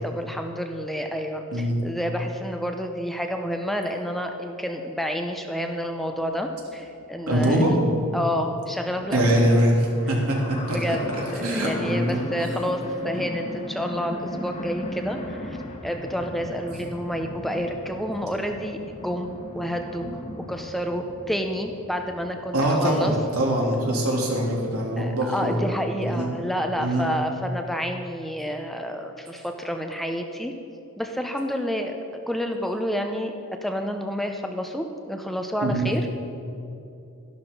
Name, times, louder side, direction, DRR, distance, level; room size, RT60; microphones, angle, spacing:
voice 1, 0.0-7.8 8.1-9.5 10.7-11.0 11.3-15.6 15.8-19.3 19.5-20.1 20.5-23.1 25.0-30.5 31.0-33.3 33.6-36.1, equal, ahead, 4 dB, 0.6 m, -29 dB
sound 1, 6.3-6.4 6.7-6.8 6.9-22.8, left 1 dB, 30° left, 1.4 m, -37 dB
voice 2, 7.3-8.0 9.1-12.2 22.5-25.6 26.0-26.3 26.7-27.1 35.6-35.9, right 1 dB, 75° right, -2 dB, 3.1 m, -23 dB
12.5 x 11.5 x 5.4 m, 2.7 s
head